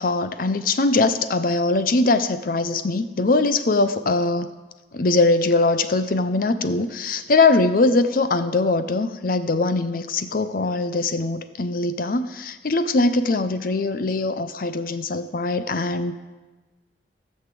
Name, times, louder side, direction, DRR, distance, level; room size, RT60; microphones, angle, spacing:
voice 1, 0.0-4.5 4.9-16.1, left 3 dB, 50° left, 11 dB, 0.6 m, -21 dB
13.0 x 6.5 x 7.6 m, 1.2 s
head